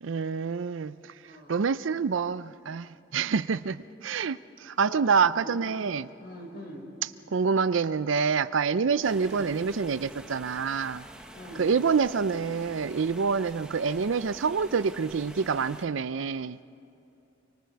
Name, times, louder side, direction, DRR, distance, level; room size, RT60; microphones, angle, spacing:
voice 1, 0.0-1.1 1.5-6.1 7.3-11.0 11.6-16.6, right 5 dB, 70° right, 15 dB, 0.5 m, -27 dB
voice 2, 1.2-1.6 3.1-3.3 4.8-5.1 5.4-5.7 6.2-6.8 9.1-9.4 11.3-11.7, equal, 50° left, 0 dB, 5.0 m, -44 dB
sound 1, 9.0-15.8, right 1 dB, 5° right, 1.1 m, -47 dB
29.5 x 24.0 x 4.7 m, 2.7 s
head